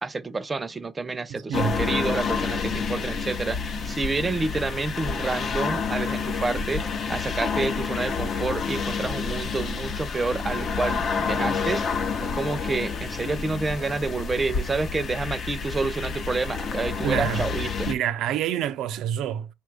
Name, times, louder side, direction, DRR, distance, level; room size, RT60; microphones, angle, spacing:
voice 1, 0.0-17.9, right 3 dB, 25° right, 0.5 m, -29 dB
voice 2, 1.3-1.8 17.0-17.5 17.9-19.5, right 10 dB, 80° right, 0.3 m, -27 dB
sound 1, 1.5-17.9, left 5 dB, 55° left, 0.7 m, -29 dB
sound 2, 5.7-15.1, left 4 dB, 20° left, 0.9 m, -45 dB
sound 3, 6.2-14.0, left 5 dB, 85° left, 1.2 m, -49 dB
5.0 x 2.3 x 3.2 m
cardioid pair, 85°, 0 cm